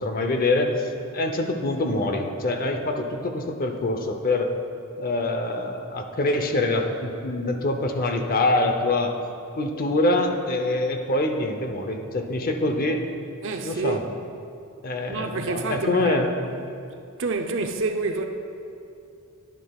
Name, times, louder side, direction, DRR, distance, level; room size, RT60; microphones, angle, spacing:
voice 1, 0.0-4.5 5.0-9.1 9.6-13.0 13.6-14.0 14.8-16.3, left 2 dB, 45° left, 0.7 m, -25 dB
voice 2, 13.4-14.0 15.1-16.2 16.5-16.6 17.2-18.2, right 3 dB, 60° right, 0.6 m, -28 dB
10.5 x 9.9 x 2.3 m
head